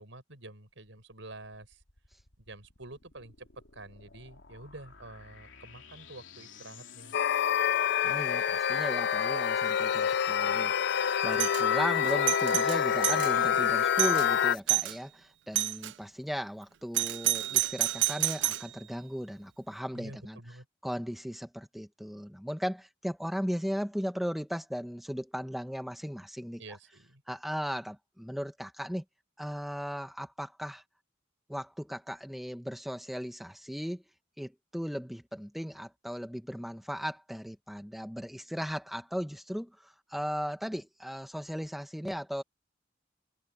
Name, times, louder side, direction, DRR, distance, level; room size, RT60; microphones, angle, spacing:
voice 1, 0.0-1.8 2.4-3.5 3.7-7.2 19.9-20.7 26.6-27.2, right 2 dB, 90° right, 5.5 m, -48 dB
sound 1, 1.7-14.6, left 8 dB, 90° left, 3.1 m, -50 dB
sound 2, 7.1-14.5, left 8 dB, 60° left, 0.4 m, -27 dB
voice 2, 8.0-20.4 20.8-26.6 27.3-29.0 29.4-30.8 31.5-34.0 34.4-42.4, equal, ahead, 1.4 m, -37 dB
Doorbell, 11.3-11.6 12.1-13.3 13.7-13.8 14.0-14.3 14.7-15.0 15.6-15.9 16.9-18.7, right 16 dB, 70° right, 0.5 m, -29 dB
head